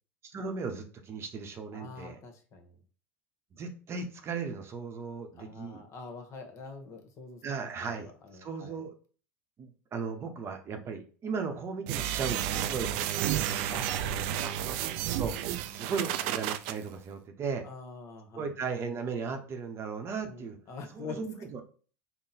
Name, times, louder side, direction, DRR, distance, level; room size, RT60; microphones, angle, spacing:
voice 1, 0.3-2.2 3.5-5.8 7.4-8.1 8.4-8.9 9.6-13.3 14.4-14.9 15.2-15.4 15.7-17.7 18.3-20.6 20.9-21.6, right 5 dB, 35° right, 6 dB, 0.8 m, -36 dB
voice 2, 1.7-2.8 5.3-7.7 8.0-8.8 13.6-14.5 14.8-15.2 17.6-18.4 20.3-21.2, left 4 dB, 45° left, 4 dB, 1.1 m, -46 dB
sound 1, 11.9-16.7, right 11 dB, 65° right, 0.4 m, -31 dB
3.7 x 2.1 x 4.2 m, 0.40 s
hypercardioid pair, 90°, 7 cm